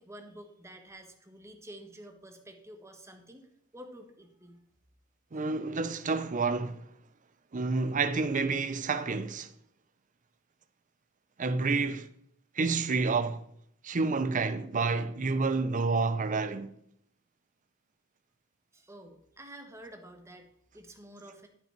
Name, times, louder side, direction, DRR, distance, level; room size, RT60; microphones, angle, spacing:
voice 1, 0.0-4.7 18.7-21.5, right 1 dB, 15° right, 1.2 m, -50 dB
voice 2, 5.3-6.8 7.5-9.5 11.4-12.1 12.6-13.4 13.8-16.7, right 4 dB, 40° right, 0.6 m, -29 dB
11.0 x 5.5 x 4.5 m
head